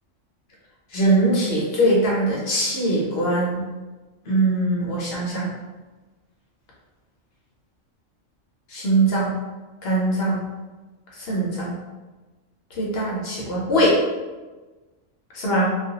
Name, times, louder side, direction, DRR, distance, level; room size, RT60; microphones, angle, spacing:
voice 1, 0.9-3.6 4.3-5.5 8.7-9.3 9.8-10.5 11.2-11.8 12.8-14.0 15.3-15.7, right 1 dB, 60° left, -4 dB, 0.7 m, -21 dB
2.4 x 2.2 x 2.8 m, 1.2 s
omnidirectional pair, 1.3 m